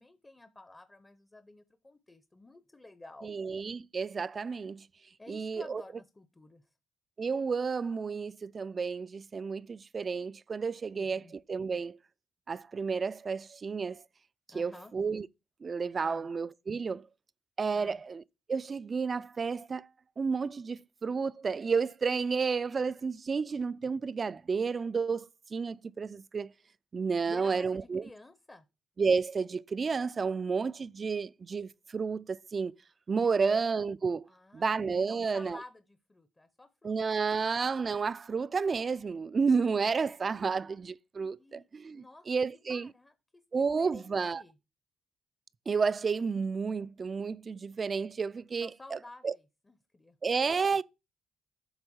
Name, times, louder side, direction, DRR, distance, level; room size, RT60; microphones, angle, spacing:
voice 1, 0.0-3.3 5.2-6.6 10.9-11.3 14.5-14.9 16.0-16.3 17.7-18.0 27.3-28.7 34.3-34.8 35.0-37.2 41.4-41.7 41.9-42.3 42.7-43.4 43.8-44.6 48.6-50.5, left 2 dB, 20° left, 0.6 m, -52 dB
voice 2, 3.2-4.9 5.3-5.8 7.2-12.0 12.5-14.0 14.5-15.3 15.6-17.1 17.6-18.2 18.5-19.9 20.2-26.5 26.9-28.1 29.0-32.7 33.1-35.6 36.8-42.9 43.5-44.4 45.7-49.0 49.2-49.3 50.2-50.8, right 5 dB, 35° right, 0.3 m, -31 dB
8.0 x 3.6 x 6.2 m
cardioid pair, 90°, 0 cm